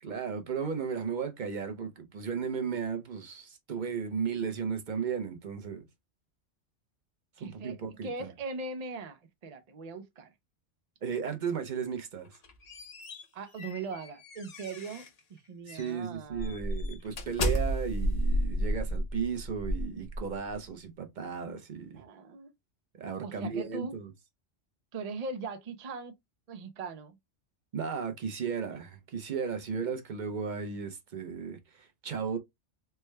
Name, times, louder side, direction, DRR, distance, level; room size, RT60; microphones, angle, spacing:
voice 1, 0.0-5.8 7.4-8.3 11.0-12.3 15.7-22.0 22.9-24.1 27.7-32.4, right 6 dB, 45° right, 0.7 m, -35 dB
voice 2, 7.4-7.8 8.0-10.3 13.3-16.6 21.9-22.5 23.2-23.9 24.9-26.1 26.5-27.2, right 3 dB, 65° right, 0.3 m, -40 dB
sound 1, 12.2-15.2 15.7-15.9 16.3-20.6, equal, 45° left, 0.5 m, -32 dB
3.4 x 2.1 x 3.1 m
omnidirectional pair, 1.2 m